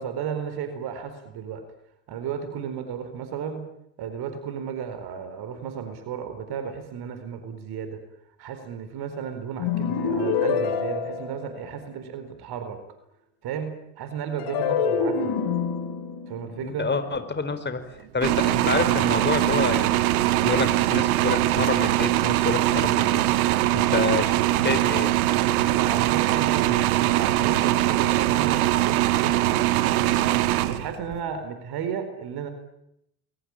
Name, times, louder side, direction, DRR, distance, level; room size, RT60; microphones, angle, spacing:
voice 1, 0.0-1.6 2.1-3.7 4.0-8.0 8.4-12.8 13.4-15.3 16.3-16.9 25.7-32.5, right 7 dB, 60° right, 9 dB, 4.4 m, -34 dB
sound 1, 9.6-12.0 14.4-17.7, left 6 dB, 65° left, 4.2 m, -27 dB
voice 2, 16.6-17.9 18.1-23.3 23.7-24.4 24.6-25.2, left 4 dB, 25° left, 10 dB, 4.4 m, -28 dB
sound 2, 18.2-31.2, right 15 dB, 75° right, 1.6 m, -22 dB
29.0 x 22.0 x 8.9 m, 0.79 s
hypercardioid pair, 60°, 44 cm